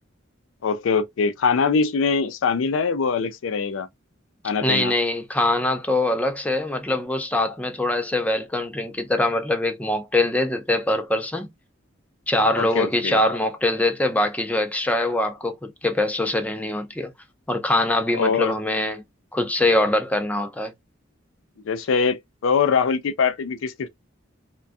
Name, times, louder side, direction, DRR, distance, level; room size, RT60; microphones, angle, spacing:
voice 1, 0.6-3.9 4.4-4.9 12.6-13.2 18.1-18.5 21.6-23.9, left 5 dB, 85° left, 0.4 m, -23 dB
voice 2, 4.6-11.5 12.3-17.1 17.5-19.0 19.3-20.7, left 1 dB, 10° left, 0.4 m, -23 dB
2.6 x 2.2 x 2.2 m
head